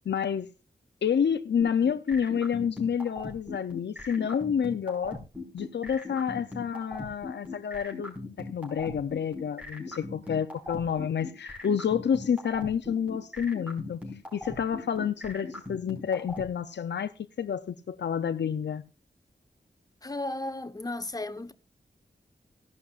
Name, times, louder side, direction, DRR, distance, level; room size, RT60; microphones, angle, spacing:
voice 1, 0.1-0.5 1.0-5.2 5.5-14.0 14.3-17.1 17.4-18.8, left 7 dB, 85° left, 0.5 m, -29 dB
sound 1, 1.6-16.4, left 2 dB, 10° right, 5.1 m, -38 dB
voice 2, 20.0-21.5, left 2 dB, 20° left, 1.0 m, -34 dB
16.0 x 11.5 x 2.4 m
wide cardioid pair, 90°, 18 cm